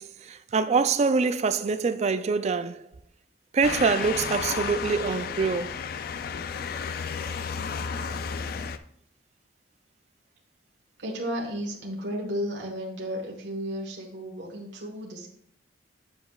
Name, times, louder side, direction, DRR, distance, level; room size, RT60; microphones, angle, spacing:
voice 1, 0.0-2.9 3.5-5.7, right 4 dB, 35° right, 0.3 m, -25 dB
Motor vehicle (road) / Siren, 3.6-8.8, left 6 dB, 50° left, 0.3 m, -32 dB
voice 2, 11.0-15.3, equal, 70° right, 1.3 m, -33 dB
8.1 x 6.9 x 2.3 m
head